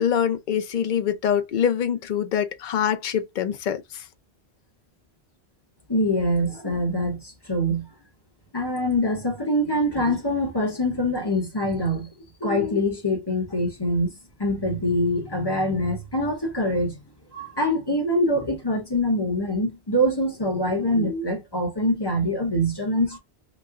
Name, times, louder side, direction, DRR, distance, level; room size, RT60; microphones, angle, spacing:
voice 1, 0.0-3.8, left 8 dB, 55° left, 0.6 m, -24 dB
voice 2, 5.9-7.9 8.5-12.1 12.4-14.1 14.4-17.0 17.3-23.2, equal, 25° left, 1.0 m, -24 dB
3.0 x 2.2 x 3.6 m
omnidirectional pair, 1.1 m